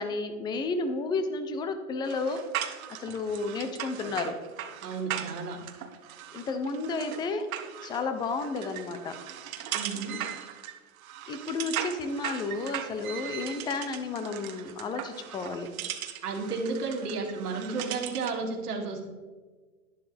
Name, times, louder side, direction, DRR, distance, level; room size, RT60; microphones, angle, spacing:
voice 1, 0.0-2.4 3.0-4.4 6.3-7.5 7.8-9.2 11.3-15.7, left 3 dB, 10° left, 9 dB, 0.4 m, -32 dB
sound 1, 2.0-18.4, right 10 dB, 65° right, 1.2 m, -38 dB
voice 2, 4.8-5.6 9.7-10.2 16.2-19.1, right 4 dB, 80° right, 1 dB, 2.5 m, -33 dB
11.0 x 11.0 x 3.4 m, 1.4 s
hypercardioid pair, 130°, 45 cm